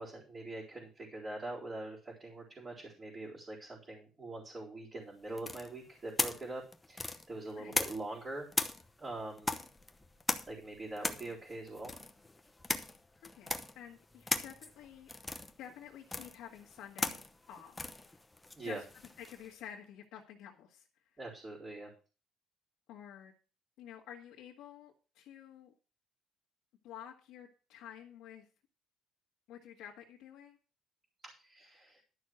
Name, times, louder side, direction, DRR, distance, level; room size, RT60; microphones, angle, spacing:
voice 1, 0.0-8.5 9.0-9.5 10.5-11.9 18.5-18.8 21.2-21.9 31.2-32.0, right 2 dB, 25° right, -7 dB, 4.2 m, -43 dB
sound 1, 5.4-8.2 8.5-19.5, left 2 dB, 10° left, 0.9 m, -38 dB
voice 2, 7.5-7.8 13.2-15.1 15.6-17.2 17.5-18.0 18.6-18.8 19.2-20.9 22.9-23.3 23.8-25.7 26.8-28.5 29.5-30.6, left 9 dB, 80° left, -2 dB, 1.8 m, -50 dB
11.5 x 6.3 x 6.3 m, 0.35 s
cardioid pair, 140°, 0 cm